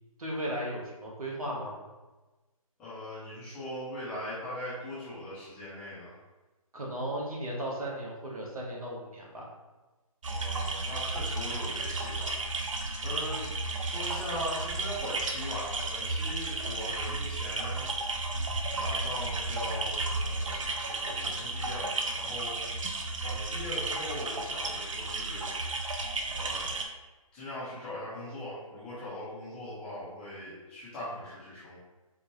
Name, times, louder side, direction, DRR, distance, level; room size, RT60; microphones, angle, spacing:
voice 1, 0.2-1.7 6.7-9.5, right 1 dB, 75° right, -3 dB, 1.2 m, -36 dB
voice 2, 2.8-6.1 10.3-12.7 13.0-13.5 13.8-17.9 18.7-25.9 26.3-26.7 27.3-31.8, left 1 dB, 5° left, -12 dB, 0.4 m, -40 dB
sound 1, 10.2-26.8, right 2 dB, 60° right, 0.5 m, -33 dB
4.4 x 2.1 x 3.0 m, 1.2 s
figure-of-eight pair, 150°, 19 cm